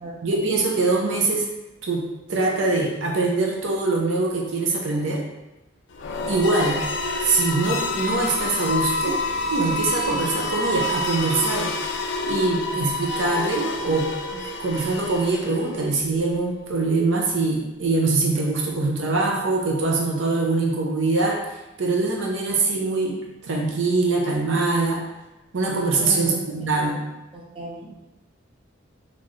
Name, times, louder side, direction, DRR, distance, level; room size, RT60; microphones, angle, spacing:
voice 1, 0.2-1.5 1.8-2.0 2.3-5.2 6.3-6.8 7.2-9.2 9.5-11.7 12.2-21.4 21.8-25.0 25.5-27.0, right 3 dB, 70° right, -1 dB, 0.6 m, -23 dB
sound 1, 5.9-15.9, left 2 dB, 65° left, 0.4 m, -28 dB
voice 2, 26.0-26.4 26.8-26.9 27.3-27.9, right 2 dB, 30° right, -3 dB, 0.8 m, -35 dB
4.1 x 3.0 x 3.1 m, 1.0 s
head